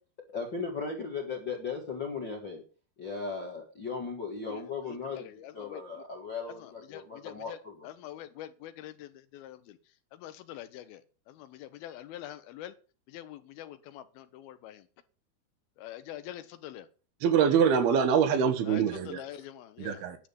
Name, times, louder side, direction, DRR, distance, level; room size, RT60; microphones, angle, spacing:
voice 1, 0.3-2.6 3.0-7.9, left 4 dB, 50° left, 1.4 m, -37 dB
voice 2, 6.9-7.3 8.0-9.6 10.2-11.0 11.6-12.7 13.1-14.8 15.8-16.8 18.7-18.8 19.1-20.0, left 12 dB, 75° left, 2.5 m, -44 dB
voice 3, 17.2-19.2 19.8-20.2, right 7 dB, 75° right, 3.1 m, -24 dB
10.5 x 7.2 x 6.9 m
omnidirectional pair, 4.6 m